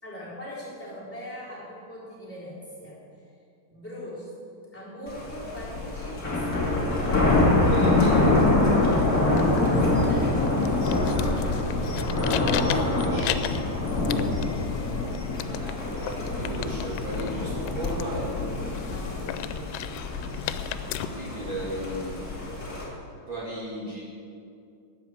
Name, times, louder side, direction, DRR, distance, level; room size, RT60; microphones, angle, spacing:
voice 1, 0.0-3.0 3.7-4.3 4.7-7.2 9.4-10.5 11.1-13.2 14.2-14.7 18.9-19.7, equal, 5° left, -8 dB, 3.0 m, -41 dB
Thunder, 5.1-22.8, left 2 dB, 45° left, 1.1 m, -25 dB
voice 2, 7.6-8.3 12.8-13.4 15.6-18.3 21.1-22.3 23.3-24.0, right 1 dB, 80° right, -6 dB, 1.1 m, -35 dB
sound 1, 9.2-21.1, left 12 dB, 85° left, 3.2 m, -36 dB
12.5 x 8.3 x 8.0 m, 2.4 s
omnidirectional pair, 5.8 m